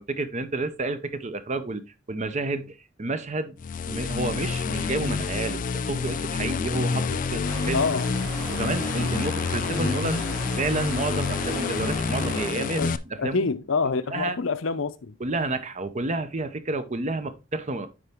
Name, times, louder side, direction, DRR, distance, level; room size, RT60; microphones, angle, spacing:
voice 1, 0.0-1.8 2.1-3.6 3.9-7.9 8.5-13.5 13.9-14.4 15.2-17.9, right 2 dB, 35° right, 0.7 m, -30 dB
sound 1, 3.6-13.0, left 5 dB, 40° left, 0.4 m, -28 dB
sound 2, 7.4-12.5, right 1 dB, 50° right, 4.2 m, -37 dB
voice 2, 7.7-8.1 12.8-12.9 13.2-15.1, left 4 dB, 75° left, 0.7 m, -26 dB
9.7 x 4.1 x 3.5 m
head